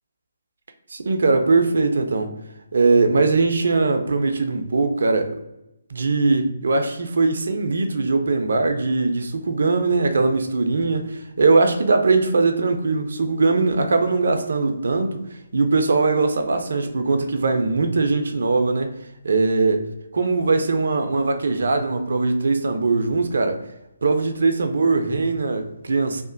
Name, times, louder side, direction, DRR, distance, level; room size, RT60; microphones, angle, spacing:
voice 1, 0.9-2.3 2.7-5.4 5.9-15.2 15.5-18.9 19.2-19.9 20.1-23.7 24.0-26.2, right 3 dB, 65° right, 6 dB, 0.4 m, -20 dB
2.8 x 2.0 x 2.6 m, 0.89 s
figure-of-eight pair, 140°, 0 cm